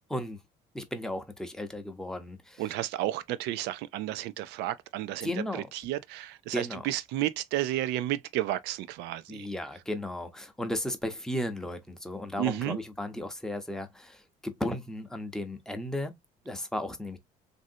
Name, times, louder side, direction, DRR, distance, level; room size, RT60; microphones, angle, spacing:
voice 1, 0.7-2.7 5.2-5.7 6.5-6.9 9.3-16.1 16.5-17.2, left 1 dB, 5° left, 0.6 m, -35 dB
voice 2, 2.6-9.5 12.4-12.8, right 14 dB, 90° right, 0.4 m, -32 dB
3.1 x 2.6 x 2.6 m
cardioid pair, 110°, 17 cm